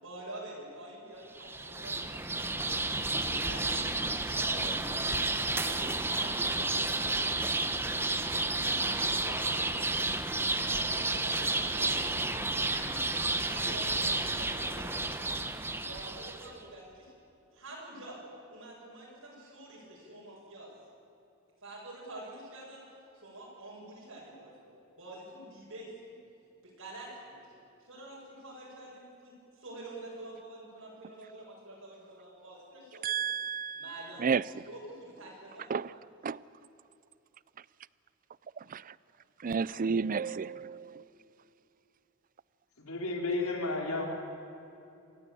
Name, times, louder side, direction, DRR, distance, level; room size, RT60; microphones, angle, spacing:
voice 1, 0.0-4.0 4.3-5.3 5.6-7.9 8.3-10.0 10.6-15.4 15.8-17.1 17.5-18.2 18.5-20.7 21.6-22.8 23.1-26.2 26.6-27.5 27.8-33.3 33.8-34.3 34.7-36.0, right 1 dB, 70° right, -5 dB, 7.2 m, -47 dB
sound 1, 1.3-16.5, right 2 dB, 10° right, 1.0 m, -31 dB
voice 2, 33.0-34.4 35.7-35.9 36.2-36.4 38.6-38.9 39.4-41.0, right 6 dB, 40° right, 20 dB, 0.5 m, -32 dB
voice 3, 42.8-44.1, left 2 dB, 90° left, 2 dB, 3.9 m, -32 dB
27.0 x 17.5 x 8.5 m, 2.8 s
head